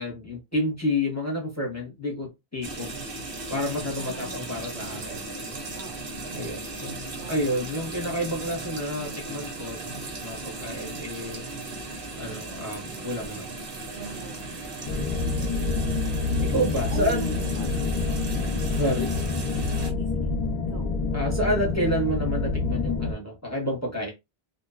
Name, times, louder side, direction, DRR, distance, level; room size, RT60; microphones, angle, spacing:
voice 1, 0.0-2.9 3.5-5.2 6.3-11.5 12.2-13.5 14.9-15.6 16.4-17.3 17.6-18.0 18.7-19.1 21.1-24.1, equal, 20° left, 0.7 m, -30 dB
sound 1, 2.6-19.9, right 3 dB, 65° right, 0.9 m, -37 dB
voice 2, 4.0-4.6 5.8-6.2 7.1-7.7 13.9-14.9 16.9-17.7 19.0-19.1 19.9-20.3 20.6-20.9, right 4 dB, 85° right, 1.0 m, -42 dB
sound 2, 14.9-23.1, left 3 dB, 55° left, 0.6 m, -27 dB
2.5 x 2.1 x 2.4 m
omnidirectional pair, 1.0 m